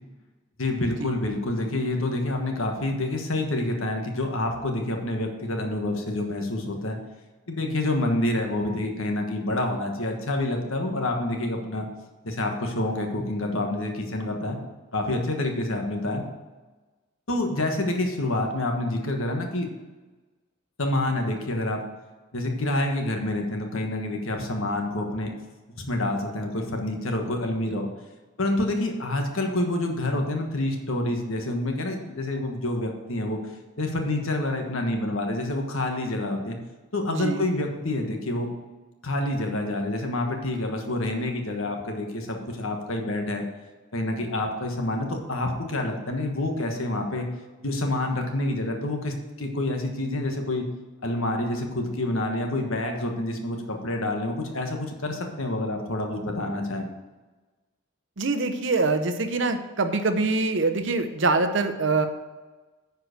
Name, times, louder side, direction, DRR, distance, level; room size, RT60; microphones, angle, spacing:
voice 1, 0.6-7.0 7.5-11.9 12.2-14.6 14.9-16.2 17.3-19.7 20.8-21.8 22.3-25.3 25.7-27.9 28.4-33.4 33.8-36.6 36.9-38.5 39.0-43.4 43.9-47.3 47.6-50.7 51.0-56.9, left 1 dB, 75° left, 3 dB, 1.4 m, -27 dB
voice 2, 37.1-37.5 58.2-62.1, right 3 dB, 60° right, 8 dB, 0.8 m, -24 dB
9.6 x 4.8 x 6.5 m, 1.3 s
head